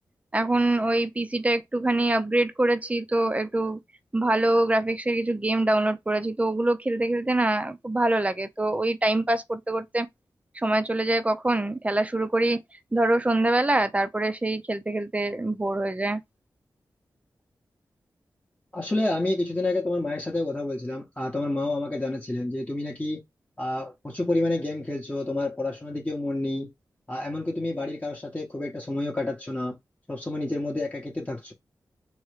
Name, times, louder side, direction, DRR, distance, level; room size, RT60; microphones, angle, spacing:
voice 1, 0.3-3.8 4.1-10.1 10.6-12.6 12.9-16.2, right 2 dB, 20° right, 0.5 m, -24 dB
voice 2, 18.7-23.2 23.6-26.7 27.1-29.8 30.1-31.5, left 2 dB, 20° left, 0.8 m, -29 dB
3.1 x 2.2 x 3.2 m
cardioid pair, 55°, 8 cm